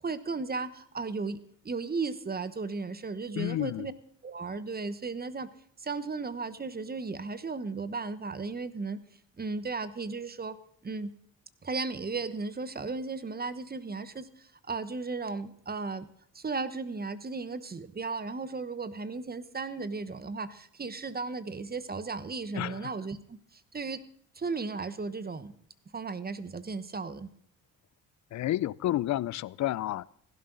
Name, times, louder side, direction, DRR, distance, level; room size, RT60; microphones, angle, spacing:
voice 1, 0.0-1.4 1.6-3.9 4.2-5.5 5.8-9.0 9.4-10.6 10.8-11.1 11.6-16.1 16.3-24.0 24.3-25.5 25.9-27.3, right 4 dB, 30° right, 13 dB, 1.1 m, -35 dB
voice 2, 3.4-3.9 22.5-22.9 28.3-30.0, left 14 dB, 55° left, 22 dB, 0.5 m, -30 dB
16.0 x 11.5 x 4.0 m, 0.64 s
supercardioid pair, 65°, 33 cm